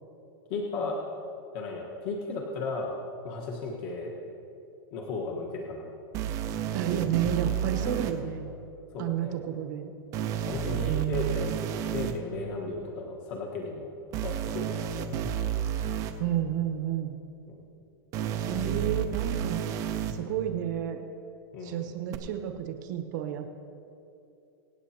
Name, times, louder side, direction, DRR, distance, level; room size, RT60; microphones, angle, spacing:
voice 1, 0.5-1.0 1.5-2.9 3.2-4.1 4.9-5.9 7.8-8.1 8.9-9.4 10.4-11.6 11.9-15.1 17.5-17.6 21.5-21.9, left 3 dB, 40° left, -2 dB, 1.4 m, -35 dB
sound 1, 6.1-8.1 10.1-12.1 14.1-16.1 18.1-20.1 22.1-22.2, right 9 dB, 25° right, 0.6 m, -31 dB
voice 2, 6.7-8.5 9.0-9.9 10.8-11.6 16.2-17.2 18.5-19.6 20.1-21.1 21.6-23.5, right 10 dB, 50° right, 5 dB, 1.1 m, -31 dB
24.5 x 8.9 x 2.9 m, 2.9 s
supercardioid pair, 165°, 12 cm